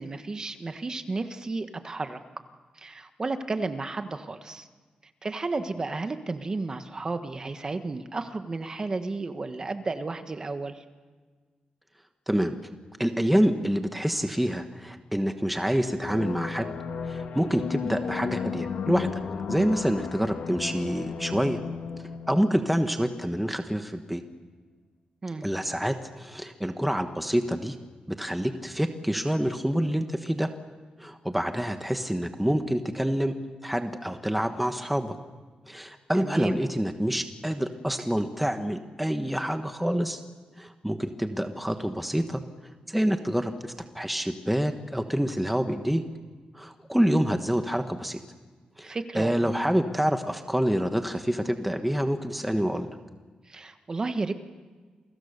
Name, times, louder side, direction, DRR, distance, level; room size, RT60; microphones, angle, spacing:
voice 1, 0.0-2.2 2.8-4.7 5.2-10.8 25.2-25.4 36.1-36.6 48.8-49.5 53.5-54.3, right 3 dB, 30° right, 8 dB, 1.4 m, -32 dB
voice 2, 13.0-16.7 17.0-19.2 19.5-21.6 22.3-24.2 25.4-27.8 28.1-30.5 31.0-33.3 33.6-35.2 35.7-40.2 40.6-42.4 42.9-46.0 46.5-48.2 48.8-52.9, equal, 5° right, 6 dB, 1.2 m, -27 dB
sound 1, 16.0-23.4, left 6 dB, 80° left, 3.0 m, -34 dB
29.0 x 23.5 x 6.8 m, 1.4 s
wide cardioid pair, 140°, 3 cm